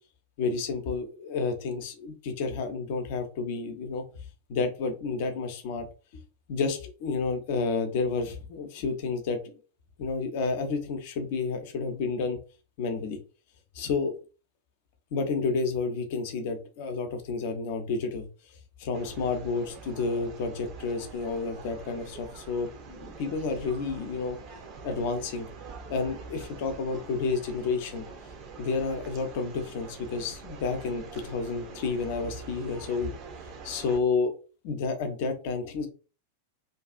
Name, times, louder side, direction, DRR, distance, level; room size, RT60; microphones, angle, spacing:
voice 1, 0.4-4.0 4.5-5.9 6.5-9.4 10.0-12.4 12.8-13.2 13.7-14.1 15.1-18.3 18.8-24.4 24.8-25.5 25.9-28.1 28.6-33.1 33.6-34.3 34.6-35.9, left 4 dB, 50° left, 6 dB, 0.6 m, -30 dB
sound 1, 18.9-34.0, right 4 dB, 35° right, 0.5 m, -45 dB
2.6 x 2.4 x 2.4 m, 0.35 s
figure-of-eight pair, 90°, 0 cm